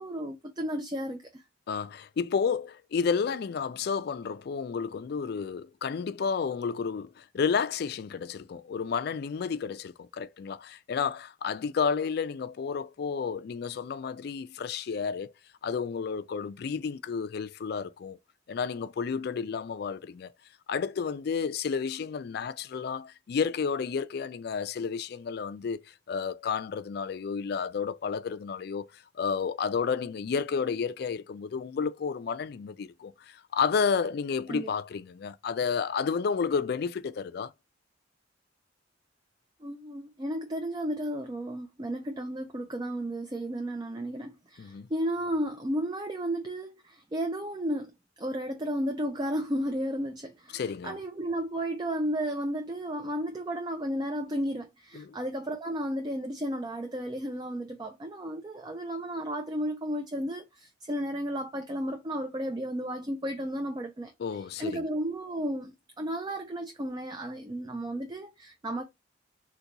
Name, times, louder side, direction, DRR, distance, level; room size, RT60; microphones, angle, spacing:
voice 1, 0.0-1.4 34.5-34.7 39.6-47.9 48.2-68.8, equal, 20° right, 0.4 m, -33 dB
voice 2, 1.7-15.3 15.6-18.2 18.5-20.3 20.7-25.8 26.1-28.9 29.2-37.5 44.6-44.9 50.5-51.0 54.9-55.2 64.2-64.8, left 6 dB, 55° left, 0.3 m, -31 dB
3.9 x 2.2 x 2.8 m
head